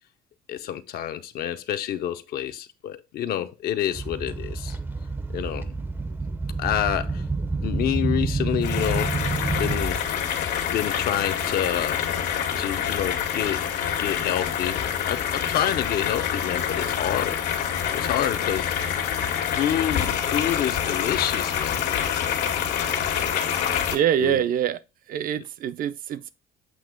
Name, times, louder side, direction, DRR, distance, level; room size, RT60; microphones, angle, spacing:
voice 1, 0.5-4.8 5.3-5.7 6.6-7.2 7.5-9.2 9.5-10.0 10.7-12.1 12.6-13.7 14.0-17.4 17.9-18.7 19.4-21.8 24.2-24.4 25.3-25.4, left 11 dB, 65° left, 0.7 m, -28 dB
sound 1, 3.9-10.2 10.7-10.9 11.8-11.9 12.7-12.8, right 3 dB, 10° right, 0.5 m, -28 dB
sound 2, 8.6-24.0, left 8 dB, 85° left, 1.5 m, -26 dB
voice 2, 23.9-24.8 25.1-26.3, right 10 dB, 55° right, 0.6 m, -24 dB
7.8 x 2.9 x 5.2 m
cardioid pair, 110°, 17 cm